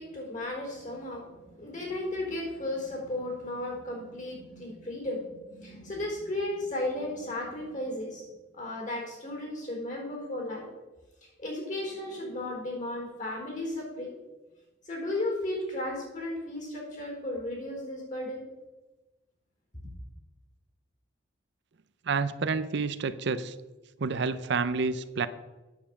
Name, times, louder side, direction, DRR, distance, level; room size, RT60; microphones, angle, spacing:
voice 1, 0.0-8.3 8.5-10.7 11.2-14.2 14.8-18.4, left 1 dB, 40° left, 0 dB, 4.1 m, -35 dB
voice 2, 22.1-23.5 24.0-25.3, right 4 dB, 60° right, 13 dB, 0.5 m, -29 dB
9.2 x 7.3 x 7.0 m, 1.1 s
head